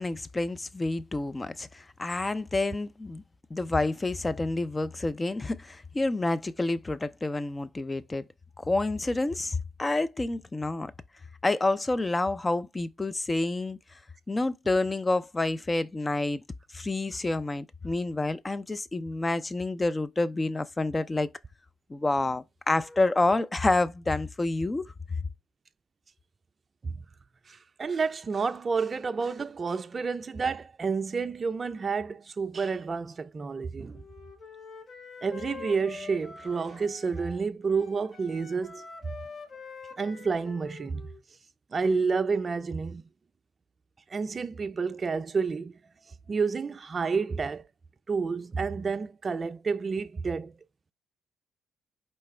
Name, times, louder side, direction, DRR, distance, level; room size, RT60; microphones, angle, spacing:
voice 1, 0.0-3.2 3.5-8.2 8.6-10.9 11.4-13.8 14.3-16.4 16.7-21.3 21.9-24.8, left 2 dB, 25° left, 0.4 m, -28 dB
voice 2, 27.5-34.0 35.2-38.9 40.0-41.0 41.7-43.0 44.1-45.8 46.3-47.6 48.1-50.5, right 5 dB, 40° right, 0.4 m, -30 dB
Wind instrument woodwind instrument, 33.9-37.4 37.7-41.2, left 5 dB, 40° left, 0.8 m, -45 dB
4.3 x 3.2 x 3.2 m
supercardioid pair, 60°, 0 cm